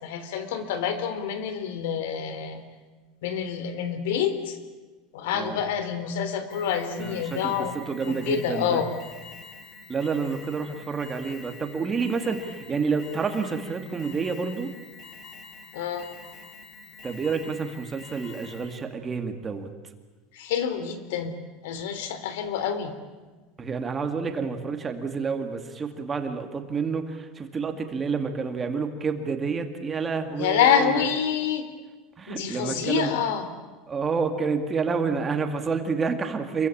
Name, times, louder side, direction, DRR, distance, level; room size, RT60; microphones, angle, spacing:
voice 1, 0.0-2.6 3.2-4.6 5.1-7.7 8.1-8.9 15.7-16.1 20.3-21.3 21.6-22.9 30.4-31.7 32.3-33.5, left 8 dB, 90° left, 11 dB, 3.5 m, -27 dB
Alarm, 6.5-18.9, left 4 dB, 30° left, 2.8 m, -46 dB
voice 2, 7.0-8.8 9.9-14.7 17.0-19.7 23.6-31.0 32.2-33.1 33.9-36.7, right 5 dB, 15° right, 6 dB, 2.2 m, -29 dB
27.5 x 23.5 x 8.7 m, 1.3 s
cardioid pair, 165°, 0 cm